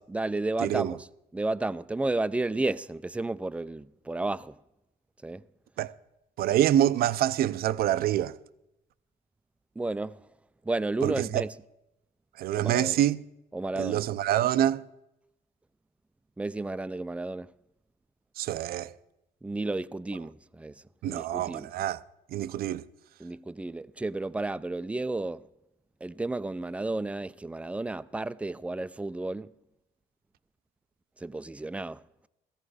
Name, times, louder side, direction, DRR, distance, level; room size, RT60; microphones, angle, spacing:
voice 1, 0.1-1.1 1.3-4.6 5.2-5.4 9.8-10.3 10.6-11.6 12.5-13.0 13.5-14.1 16.4-17.5 19.4-21.7 23.2-25.5 26.0-29.5 31.2-32.0, right 2 dB, 5° right, 0.4 m, -32 dB
voice 2, 0.6-1.0 5.8-5.9 6.4-8.3 11.0-11.4 12.4-13.2 13.8-14.8 18.4-18.9 21.0-22.0 22.3-22.8, right 12 dB, 65° right, 0.6 m, -26 dB
17.0 x 14.5 x 4.9 m
cardioid pair, 110°, 17 cm